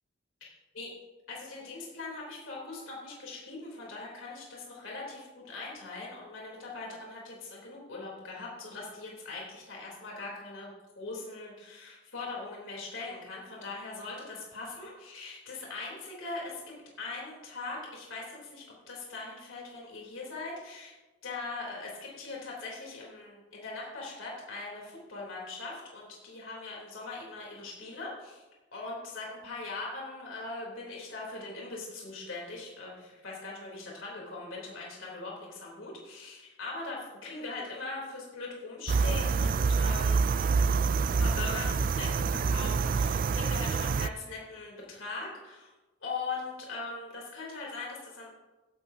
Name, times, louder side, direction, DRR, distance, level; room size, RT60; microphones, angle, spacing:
voice 1, 1.3-10.7 11.0-16.6 17.0-20.9 21.2-28.4 28.7-40.2 41.2-45.7 46.0-48.3, left 3 dB, 90° left, -3 dB, 3.6 m, -41 dB
sound 1, 38.9-44.1, right 5 dB, 45° right, 0.3 m, -27 dB
16.0 x 11.0 x 2.8 m, 1.1 s
head